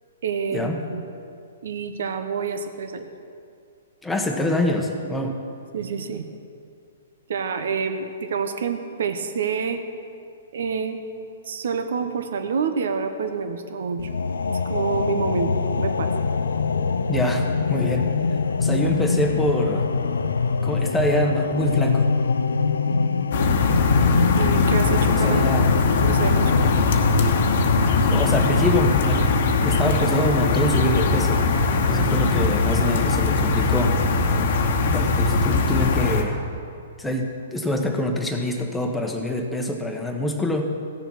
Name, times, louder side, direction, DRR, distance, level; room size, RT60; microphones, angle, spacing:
voice 1, 0.2-1.0 1.6-3.1 5.7-6.3 7.3-9.8 10.5-11.0 11.5-14.1 14.5-15.5 15.8-16.1 24.3-25.6 26.0-26.7, right 6 dB, 70° right, 7 dB, 1.1 m, -27 dB
voice 2, 4.0-5.4 17.1-18.1 18.6-19.9 20.6-22.1 25.2-25.7 28.1-29.3 29.6-31.5 31.9-34.0 34.9-36.4 37.0-40.7, left 1 dB, 5° left, 1 dB, 1.2 m, -25 dB
sound 1, 14.0-29.0, left 5 dB, 85° left, 0.5 m, -23 dB
sound 2, 23.3-36.2, left 3 dB, 60° left, 1.2 m, -21 dB
16.0 x 7.0 x 5.8 m, 2.4 s
hypercardioid pair, 125°, 0 cm